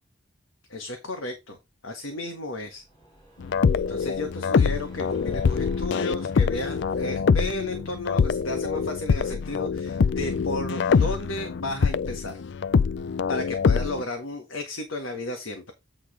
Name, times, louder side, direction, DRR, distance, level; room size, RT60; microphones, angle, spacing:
voice 1, 0.7-1.6 1.8-2.8 3.7-12.4 13.3-15.7, left 2 dB, 75° left, 4 dB, 1.6 m, -33 dB
sound 1, 2.5-7.8, right 2 dB, 20° left, 4.2 m, -52 dB
sound 2, 3.4-14.0, left 5 dB, 60° left, 0.4 m, -24 dB
8.7 x 3.9 x 5.0 m, 0.23 s
head